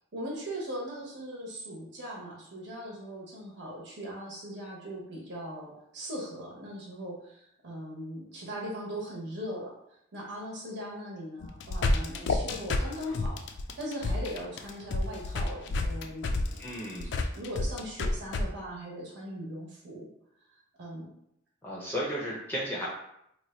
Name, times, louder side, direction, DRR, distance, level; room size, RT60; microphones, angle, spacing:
voice 1, 0.1-9.7 10.1-13.4 13.8-16.4 16.6-16.7 17.3-20.1 20.5-21.1, equal, 60° right, -4 dB, 1.0 m, -39 dB
sound 1, 11.4-18.4, left 2 dB, 60° left, 0.3 m, -30 dB
voice 2, 16.6-17.1 21.6-22.9, equal, 10° left, -6 dB, 0.5 m, -34 dB
3.0 x 2.2 x 4.2 m, 0.76 s
head